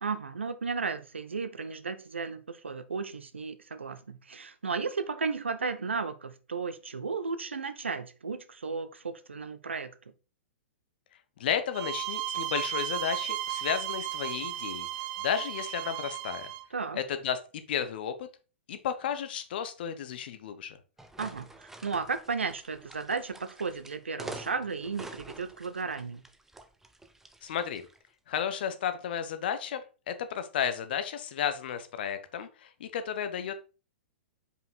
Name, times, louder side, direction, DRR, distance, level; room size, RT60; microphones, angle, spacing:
voice 1, 0.0-9.9 16.7-17.0 21.2-26.2, right 4 dB, 75° right, 0.7 m, -34 dB
voice 2, 11.4-14.9 15.2-16.5 16.9-18.3 18.7-20.8 27.4-27.9 28.3-29.8 30.1-33.5, left 8 dB, 55° left, 1.0 m, -33 dB
sound 1, 11.7-16.6, right 13 dB, 45° right, 0.7 m, -35 dB
sound 2, 21.0-28.0, right 2 dB, 5° right, 0.7 m, -47 dB
5.3 x 5.0 x 4.1 m
figure-of-eight pair, 105°, 6 cm